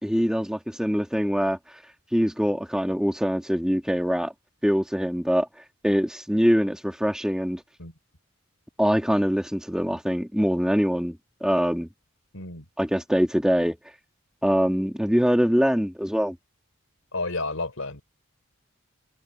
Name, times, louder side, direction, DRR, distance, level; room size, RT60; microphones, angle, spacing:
voice 1, 0.0-1.6 2.1-4.3 4.6-5.5 5.8-7.6 8.8-11.2 11.4-11.9 12.8-13.8 14.4-16.4, equal, 5° right, 2.8 m, -23 dB
voice 2, 12.3-12.7 17.1-18.0, left 2 dB, 75° left, 4.2 m, -31 dB
head